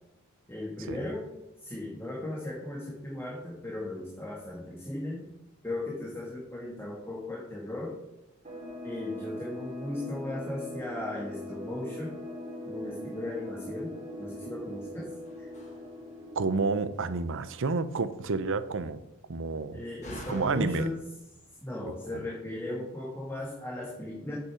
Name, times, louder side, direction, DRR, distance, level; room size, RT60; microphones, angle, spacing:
voice 1, 0.5-1.2 1.6-5.3 5.6-7.9 8.8-12.2 12.6-13.9 14.2-15.1 15.4-15.5 19.7-21.0 21.6-24.4, left 1 dB, 10° left, -3 dB, 1.8 m, -36 dB
sound 1, 8.4-17.8, left 1 dB, 30° right, 2.8 m, -42 dB
Slam, 14.6-22.2, equal, 35° left, 2.0 m, -52 dB
voice 2, 16.4-19.0 19.3-19.8 20.3-20.9 21.8-21.9, right 4 dB, 60° right, 13 dB, 0.7 m, -30 dB
8.2 x 6.7 x 6.2 m, 0.89 s
head